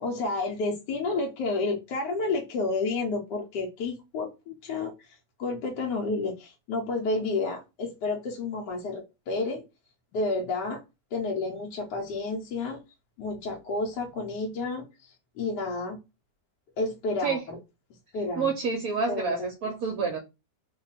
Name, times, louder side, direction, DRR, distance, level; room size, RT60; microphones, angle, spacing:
voice 1, 0.0-9.6 10.1-10.8 11.1-12.8 13.2-16.0 16.8-17.6 18.1-18.5 19.1-20.1, left 3 dB, 80° left, 1.3 m, -31 dB
voice 2, 18.4-20.2, right 5 dB, 70° right, 1.0 m, -28 dB
3.0 x 2.2 x 4.0 m
omnidirectional pair, 1.8 m